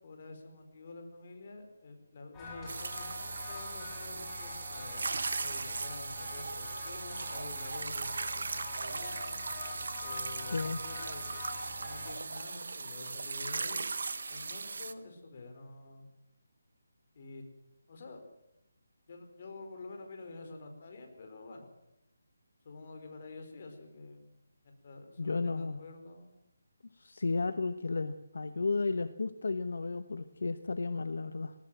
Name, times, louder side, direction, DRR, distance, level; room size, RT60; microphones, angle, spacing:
voice 1, 0.0-9.4 10.0-11.3 11.8-13.8 14.3-16.1 17.1-17.4 17.9-18.3 19.1-21.7 22.6-24.3 24.6-26.3, left 3 dB, 40° left, 5 dB, 4.8 m, -48 dB
sound 1, 2.3-12.2, left 2 dB, 10° left, 5.5 m, -45 dB
sound 2, 2.7-14.9, right 4 dB, 65° right, 1.4 m, -38 dB
voice 2, 10.5-10.8 25.2-25.8 27.0-31.5, left 3 dB, 70° left, 11 dB, 1.1 m, -33 dB
19.0 x 19.0 x 7.7 m, 0.87 s
figure-of-eight pair, 165°, 0 cm